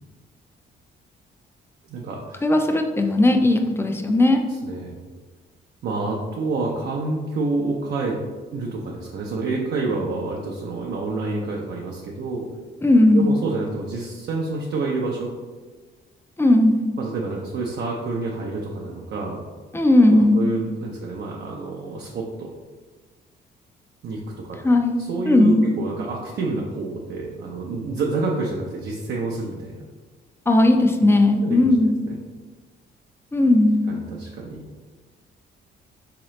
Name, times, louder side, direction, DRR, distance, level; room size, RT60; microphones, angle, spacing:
voice 1, 1.9-2.4 4.5-4.9 5.8-8.2 8.5-12.5 13.1-15.3 17.0-19.4 20.3-22.5 24.0-24.2 24.4-24.6 25.0-29.9 31.4-31.7 32.1-32.2 33.9-34.6, right 3 dB, 60° right, -1 dB, 0.5 m, -28 dB
voice 2, 2.4-4.4 12.8-13.3 16.4-16.8 19.7-20.4 24.6-25.0 25.3-25.7 30.5-32.0 33.3-33.8, left 1 dB, 10° left, 4 dB, 0.4 m, -17 dB
3.8 x 2.9 x 3.1 m, 1.4 s
cardioid pair, 90°, 20 cm